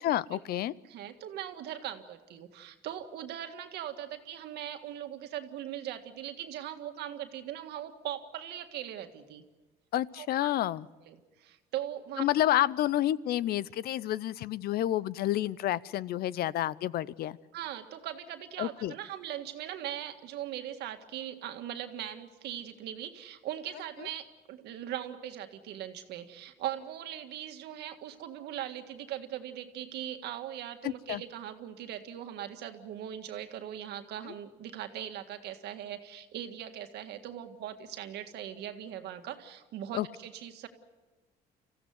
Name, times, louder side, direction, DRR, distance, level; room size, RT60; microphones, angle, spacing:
voice 1, 0.0-0.7 9.9-10.9 12.2-17.4 18.6-18.9 30.8-31.2 34.2-34.3 39.9-40.1, left 13 dB, 65° left, 20 dB, 0.6 m, -29 dB
voice 2, 0.9-9.4 10.2-10.5 11.1-12.2 17.5-40.7, right 11 dB, 80° right, 7 dB, 1.8 m, -40 dB
25.5 x 15.5 x 9.5 m, 1.2 s
cardioid pair, 110°, 17 cm